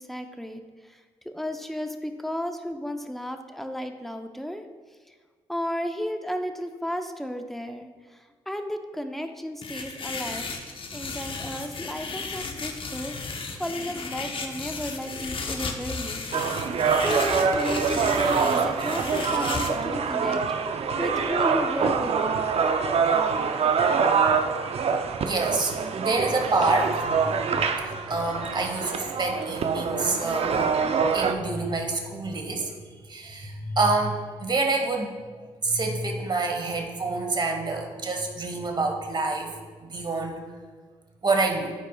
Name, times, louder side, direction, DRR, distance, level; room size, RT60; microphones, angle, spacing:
voice 1, 0.0-4.7 5.1-5.2 5.5-16.3 17.0-22.2, equal, ahead, 6 dB, 0.7 m, -33 dB
sound 1, 9.6-19.7, left 4 dB, 45° left, 0.8 m, -34 dB
sound 2, 16.3-31.3, right 5 dB, 55° right, 0.5 m, -25 dB
voice 2, 25.2-27.3 27.8-30.7 31.1-32.7 33.1-35.1 35.6-39.5 39.8-40.4 41.2-41.7, right 3 dB, 40° right, 3 dB, 1.4 m, -27 dB
12.5 x 4.7 x 2.3 m, 1.5 s
supercardioid pair, 55°, 12 cm